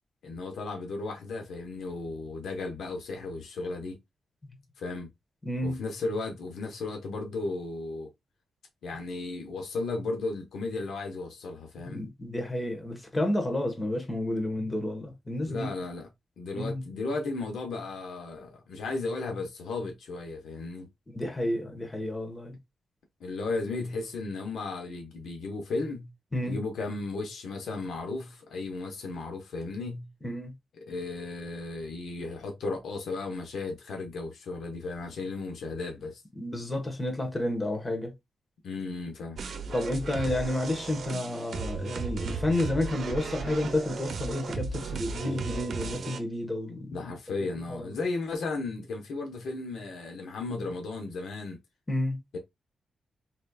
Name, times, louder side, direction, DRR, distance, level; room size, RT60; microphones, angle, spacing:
voice 1, 0.2-4.0 4.8-5.1 5.6-8.1 8.8-12.0 15.5-16.1 16.4-20.9 23.2-26.1 26.4-30.1 30.8-36.2 38.6-39.4 46.9-51.6 52.3-52.4, left 3 dB, 85° left, 1.0 m, -35 dB
voice 2, 5.4-5.8 11.8-15.7 16.5-16.8 21.1-22.6 26.3-26.6 30.2-30.5 36.4-38.1 39.7-47.1 47.7-47.9 51.9-52.2, left 1 dB, 25° left, 1.3 m, -30 dB
sound 1, 39.4-46.2, right 4 dB, 70° right, 0.7 m, -35 dB
4.1 x 3.2 x 2.3 m
cardioid pair, 90°, 0 cm